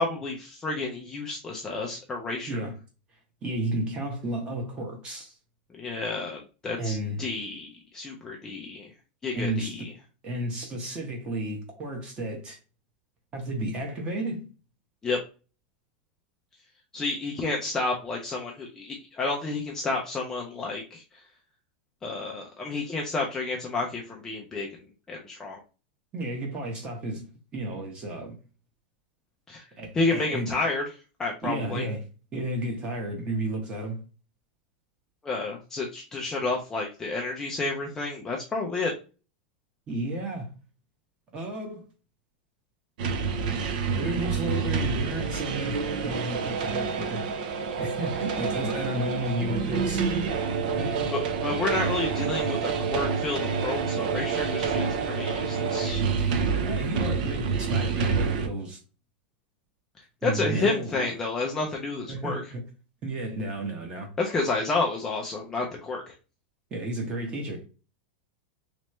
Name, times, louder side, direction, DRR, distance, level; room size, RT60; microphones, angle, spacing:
voice 1, 0.0-2.7 5.8-7.7 7.9-8.9 9.2-9.9 15.0-15.2 16.9-21.0 22.0-24.7 25.1-25.6 29.5-29.6 29.9-30.8 31.2-31.8 35.2-38.9 51.1-56.0 60.2-62.4 64.2-66.1, left 3 dB, 10° left, 0.4 m, -30 dB
voice 2, 2.5-2.8 3.4-5.3 6.8-7.2 9.3-9.7 10.2-12.6 13.3-14.5 26.1-28.4 29.8-30.6 31.4-32.0 32.3-34.0 39.9-40.5 41.3-41.8 43.9-47.3 47.8-50.2 50.8-51.1 52.8-52.9 56.2-56.3 56.6-58.8 60.2-61.1 62.1-62.6 63.0-64.1 66.7-67.6, right 1 dB, 20° right, 0.9 m, -32 dB
sound 1, 43.0-58.5, right 5 dB, 55° right, 0.5 m, -28 dB
3.2 x 3.1 x 3.0 m
supercardioid pair, 175°, 5 cm